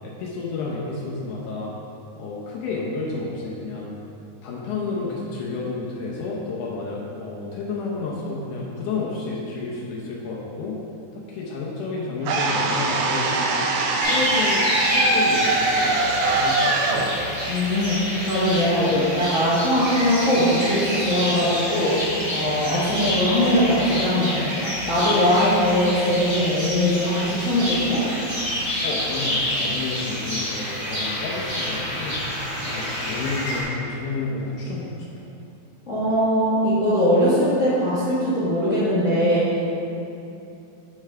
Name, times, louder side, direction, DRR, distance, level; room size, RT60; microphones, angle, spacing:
voice 1, 0.0-1.7 2.2-3.9 4.4-10.7 11.3-13.7 14.0-17.1 28.8-32.2 32.6-35.1, left 3 dB, 80° left, -5 dB, 2.3 m, -30 dB
sound 1, 12.2-18.3, right 3 dB, 75° right, 1.6 m, -23 dB
sound 2, 14.0-33.6, left 1 dB, 15° right, 0.9 m, -27 dB
voice 2, 17.5-18.0 18.2-21.9 22.3-24.5 24.9-28.0 35.9-39.4, equal, 45° left, -11 dB, 1.0 m, -21 dB
11.0 x 4.7 x 3.3 m, 2.8 s
omnidirectional pair, 3.5 m